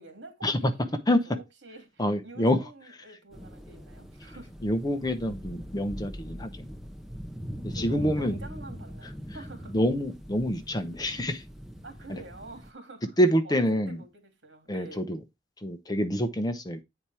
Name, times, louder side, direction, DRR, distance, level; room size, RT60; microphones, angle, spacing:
voice 1, 0.0-4.5 7.7-9.8 11.8-13.2 13.4-15.1, right 2 dB, 70° right, 2.8 m, -47 dB
voice 2, 2.0-2.6 4.6-6.7 7.6-8.4 9.7-11.4 12.1-12.2 13.2-14.0 14.7-15.2 15.6-16.8, equal, 20° left, 0.9 m, -26 dB
sound 1, 3.3-12.7, equal, ahead, 0.9 m, -41 dB
8.7 x 4.4 x 4.8 m
head